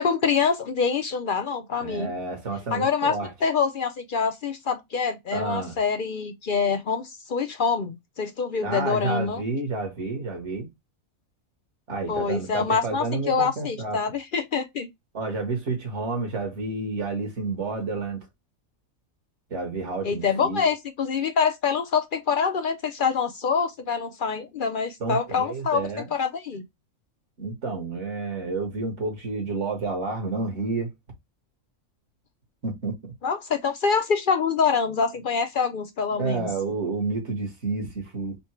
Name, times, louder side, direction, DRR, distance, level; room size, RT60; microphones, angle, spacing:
voice 1, 0.0-2.1 2.7-3.1 3.4-9.4 12.1-14.9 20.0-26.6 33.2-36.5, left 5 dB, 55° left, 0.6 m, -25 dB
voice 2, 1.8-3.3 5.3-5.7 8.6-10.7 11.9-14.0 15.1-18.3 19.5-20.7 25.0-26.1 27.4-30.9 32.6-33.1 36.2-38.4, right 3 dB, 60° right, 1.7 m, -30 dB
4.3 x 2.1 x 4.3 m
omnidirectional pair, 1.4 m